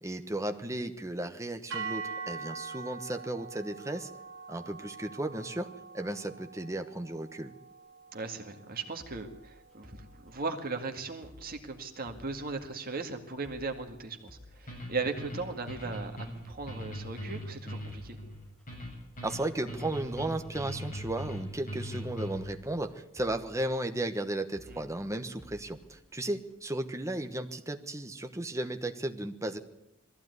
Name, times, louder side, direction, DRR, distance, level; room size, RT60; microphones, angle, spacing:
voice 1, 0.0-4.1 4.5-7.5 19.2-29.6, right 1 dB, 15° right, 7 dB, 1.1 m, -35 dB
sound 1, 1.7-10.0, right 5 dB, 60° right, 2.5 m, -44 dB
voice 2, 8.1-18.2 24.7-24.8, right 3 dB, 40° right, 5 dB, 2.0 m, -38 dB
sound 2, 9.0-26.8, left 1 dB, ahead, 3.5 m, -56 dB
sound 3, 14.7-22.6, equal, 35° left, 7.5 m, -40 dB
20.5 x 15.0 x 9.5 m, 0.85 s
head